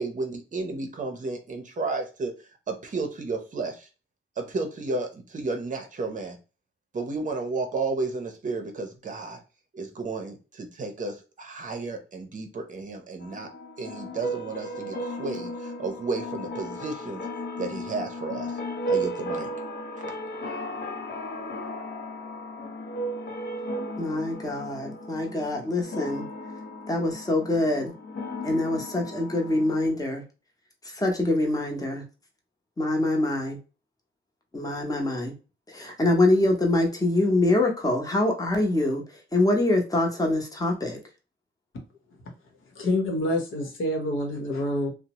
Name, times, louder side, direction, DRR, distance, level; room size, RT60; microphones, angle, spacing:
voice 1, 0.0-2.3 2.7-3.9 4.4-6.4 6.9-9.4 9.7-13.5 13.8-17.2 17.6-18.5 18.9-19.5, right 3 dB, 40° right, 5 dB, 0.6 m, -32 dB
sound 1, 13.2-29.9, equal, 55° left, 0.6 m, -35 dB
voice 2, 24.0-26.3 26.9-27.9 28.4-30.2 30.9-32.0 32.8-33.6 34.5-35.3 35.7-39.0 39.3-41.0, left 2 dB, 15° left, 1 dB, 0.8 m, -24 dB
voice 3, 42.8-44.9, left 1 dB, 75° left, 2 dB, 0.9 m, -27 dB
2.7 x 2.0 x 2.9 m, 0.32 s
cardioid pair, 105°, 21 cm